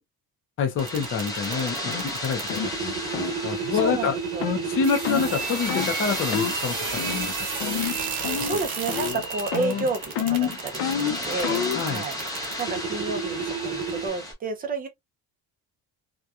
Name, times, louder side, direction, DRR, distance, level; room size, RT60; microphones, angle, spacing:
voice 1, 0.6-4.2 4.7-6.9 7.2-7.3 7.7-7.8 11.7-12.1, left 5 dB, 35° left, 0.5 m, -27 dB
sound 1, 0.8-14.3, left 1 dB, 10° left, 0.8 m, -34 dB
sound 2, 0.8-14.1, right 6 dB, 60° right, 1.1 m, -32 dB
sound 3, 1.9-2.0 2.5-2.7 3.1-3.3 3.8-4.0 4.4-4.6 5.0-5.3 5.7-5.9 6.3-6.6 7.0-7.3 7.6-8.0 8.2-8.6 8.9-9.2 9.5-11.8, left 9 dB, 75° left, 0.6 m, -28 dB
voice 2, 3.7-4.5 8.4-12.2 12.6-14.9, right 3 dB, 25° right, 0.4 m, -31 dB
2.8 x 2.2 x 2.3 m
cardioid pair, 175°, 38 cm